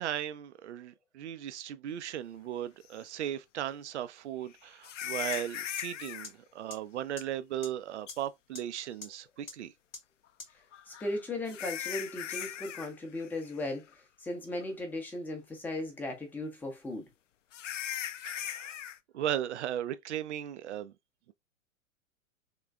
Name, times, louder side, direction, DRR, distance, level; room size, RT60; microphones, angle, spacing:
voice 1, 0.0-9.7 18.3-18.7 19.1-20.9, right 11 dB, 60° right, 0.5 m, -37 dB
sound 1, 3.0-3.1 4.8-6.3 8.1-8.2 10.7-12.9 13.2-13.5 13.9-14.0 14.6-14.7 17.5-19.0, left 10 dB, 65° left, 0.5 m, -38 dB
sound 2, 5.3-5.4 5.8-5.9 6.2-6.3 6.7-6.8 7.2-7.3 7.6-7.7 8.1-8.2 8.6-8.7 9.0-9.1 9.5-9.6 9.9-10.0 10.4-10.5, left 3 dB, 85° left, 1.0 m, -42 dB
voice 2, 10.9-13.8 14.2-17.0, left 2 dB, 5° left, 0.7 m, -37 dB
3.7 x 3.1 x 2.3 m
figure-of-eight pair, 110°, 40 cm